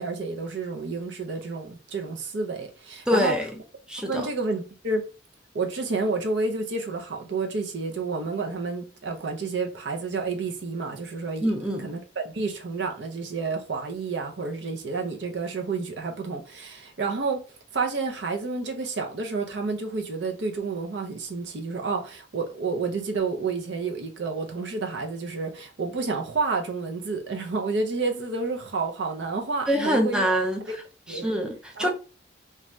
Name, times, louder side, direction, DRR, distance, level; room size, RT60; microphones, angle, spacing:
voice 1, 0.0-3.3 4.0-5.0 5.5-11.5 11.8-17.4 17.7-30.3 30.7-30.8 31.1-31.3 31.8-31.9, right 4 dB, 65° right, 0.6 m, -30 dB
voice 2, 3.1-3.5 3.9-4.3 11.4-11.9 29.7-30.8 31.1-31.9, equal, 5° right, 0.4 m, -25 dB
2.6 x 2.3 x 3.0 m
head